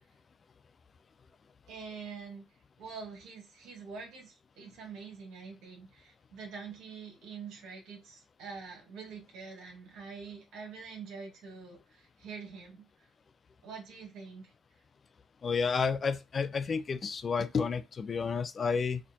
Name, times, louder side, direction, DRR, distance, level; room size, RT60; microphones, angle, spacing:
voice 1, 1.7-2.5 2.8-12.9 13.6-14.5, right 5 dB, 75° right, 1.6 m, -45 dB
voice 2, 15.4-19.0, left 5 dB, 40° left, 0.4 m, -31 dB
4.2 x 2.5 x 2.7 m
cardioid pair, 85°, 0 cm